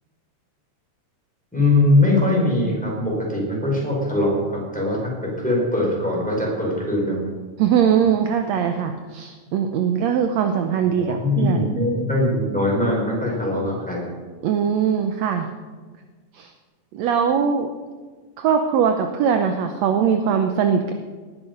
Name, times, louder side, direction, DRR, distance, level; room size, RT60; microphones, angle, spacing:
voice 1, 1.5-7.2 11.0-14.0, left 1 dB, ahead, -3 dB, 4.8 m, -21 dB
voice 2, 7.6-11.7 14.4-15.5 16.3-16.5 16.9-17.7 18.4-20.9, right 7 dB, 70° right, 6 dB, 1.9 m, -21 dB
19.0 x 10.5 x 5.3 m, 1.4 s
omnidirectional pair, 3.5 m